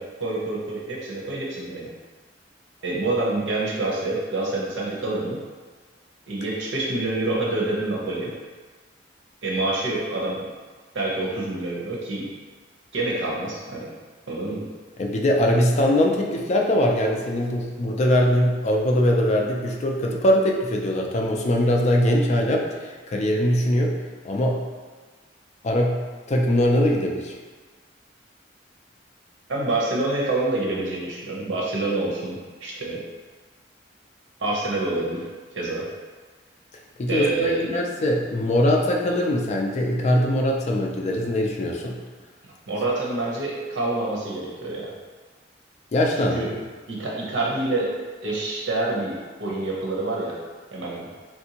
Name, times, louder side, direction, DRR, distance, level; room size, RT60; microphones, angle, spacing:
voice 1, 0.0-1.9 2.8-5.4 6.3-8.3 9.4-10.5 10.9-12.3 12.9-13.9 14.3-14.6 29.5-33.0 34.4-35.2 35.5-35.9 37.1-37.7 42.4-44.9 46.3-46.5 46.9-47.9 48.2-50.3 50.7-51.1, right 2 dB, 80° right, -4 dB, 0.8 m, -27 dB
voice 2, 15.0-23.9 24.2-24.6 25.6-26.0 26.3-27.3 37.0-42.0 45.9-46.5, left 1 dB, 40° left, 0 dB, 0.4 m, -22 dB
3.3 x 2.6 x 2.8 m, 1.4 s
head